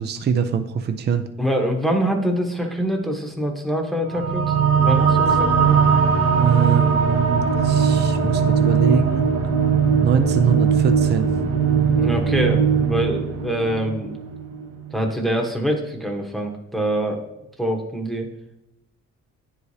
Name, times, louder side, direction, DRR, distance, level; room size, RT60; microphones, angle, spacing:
voice 1, 0.0-1.2 6.2-9.3 10.0-11.3, right 7 dB, 35° right, 7 dB, 0.5 m, -24 dB
voice 2, 1.4-5.8 11.9-14.2 14.9-17.2 17.6-18.3, equal, ahead, 1 dB, 1.0 m, -24 dB
sound 1, 4.1-15.0, right 6 dB, 50° right, 0.9 m, -19 dB
9.7 x 4.9 x 2.7 m, 0.84 s
cardioid pair, 90°, 30 cm